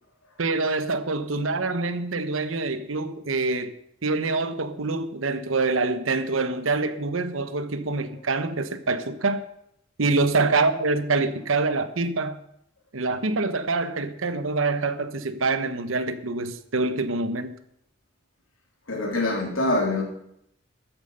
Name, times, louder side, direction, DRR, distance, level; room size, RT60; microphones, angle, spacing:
voice 1, 0.4-3.7 4.0-9.4 10.0-12.4 12.9-17.6, right 3 dB, 80° right, 1.0 m, -25 dB
voice 2, 18.9-20.0, left 2 dB, 85° left, 3.2 m, -24 dB
13.5 x 9.0 x 5.5 m
head